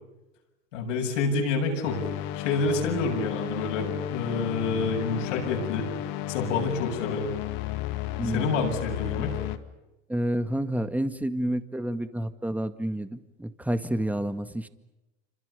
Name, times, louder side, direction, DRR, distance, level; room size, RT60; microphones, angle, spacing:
voice 1, 0.7-2.0 2.3-5.9 6.3-7.3 8.3-9.3, left 4 dB, 85° left, 2 dB, 7.7 m, -28 dB
sound 1, 1.8-9.6, left 12 dB, 65° left, 2.2 m, -33 dB
voice 2, 10.1-14.7, right 1 dB, 5° right, 10 dB, 2.0 m, -29 dB
28.0 x 26.5 x 7.1 m, 1.0 s
hypercardioid pair, 90°, 36 cm